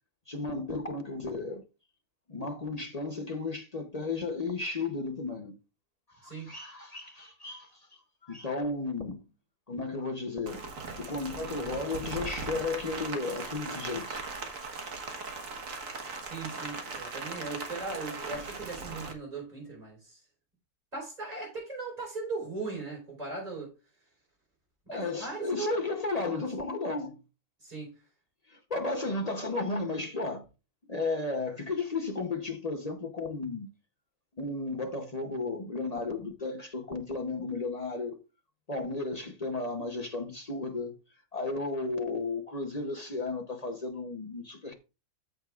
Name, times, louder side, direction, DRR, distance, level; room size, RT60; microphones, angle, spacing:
voice 1, 0.3-1.6 2.3-5.6 6.1-7.9 8.2-9.2 9.7-10.6 11.0-14.2 24.9-27.2 28.5-30.5 30.9-33.7 34.4-38.2 38.7-41.0 41.3-44.7, left 3 dB, 55° left, 0.4 m, -34 dB
Rain, 10.5-19.1, right 4 dB, 45° right, 1.5 m, -39 dB
voice 2, 16.2-20.2 20.9-23.7 24.9-25.8 26.3-26.4 27.6-27.9, right 3 dB, 20° right, 4.4 m, -38 dB
14.0 x 6.3 x 2.4 m
omnidirectional pair, 2.1 m